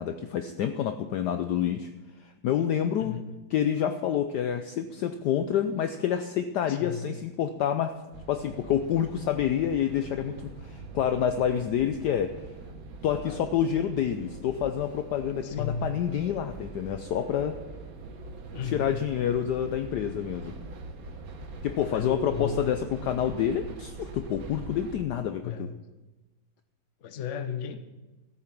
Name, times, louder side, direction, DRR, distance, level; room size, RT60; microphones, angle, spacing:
voice 1, 0.0-1.9 2.4-3.2 3.5-7.9 8.3-12.4 13.0-17.6 18.7-20.5 21.6-25.7, left 9 dB, 70° left, 9 dB, 1.0 m, -28 dB
voice 2, 6.7-7.1 13.1-13.4 15.4-15.9 18.5-18.9 21.9-22.8 25.4-25.7 27.0-27.8, left 6 dB, 50° left, 9 dB, 1.0 m, -35 dB
sound 1, 8.1-25.0, right 3 dB, 50° right, 1.4 m, -43 dB
13.5 x 8.7 x 5.9 m, 1.1 s
omnidirectional pair, 2.2 m